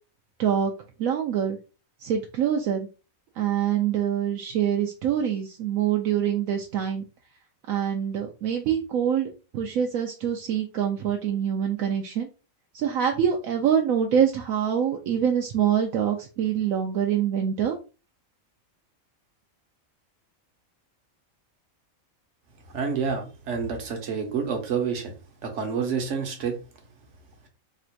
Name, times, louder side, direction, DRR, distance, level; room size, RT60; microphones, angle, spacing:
voice 1, 0.4-0.7 1.0-1.6 2.0-2.9 3.4-7.0 7.7-12.3 12.7-17.7, right 9 dB, 80° right, 2 dB, 1.1 m, -25 dB
voice 2, 22.7-25.1 25.4-26.6, right 6 dB, 60° right, 4 dB, 1.3 m, -28 dB
3.2 x 2.5 x 4.4 m, 0.32 s
omnidirectional pair, 1.4 m